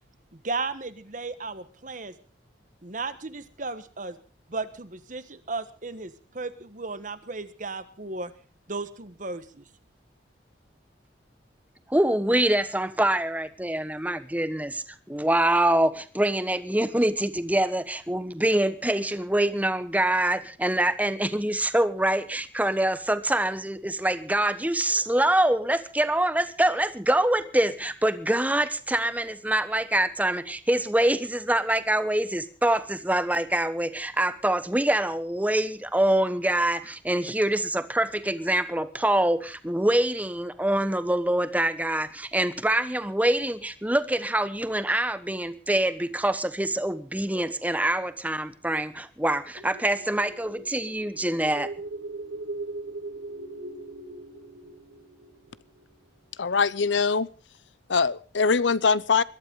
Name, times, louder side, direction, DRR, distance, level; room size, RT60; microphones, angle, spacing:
voice 1, 0.3-2.1 2.8-4.2 4.5-8.3 8.7-9.7, right 3 dB, 45° right, 12 dB, 1.4 m, -35 dB
voice 2, 11.9-51.7, right 1 dB, 10° right, 12 dB, 1.1 m, -25 dB
sound 1, 49.6-56.1, right 2 dB, 70° right, 1.6 m, -40 dB
voice 3, 56.4-57.3 57.9-59.2, left 5 dB, 90° left, 19 dB, 0.7 m, -22 dB
21.5 x 12.0 x 5.3 m, 0.38 s
head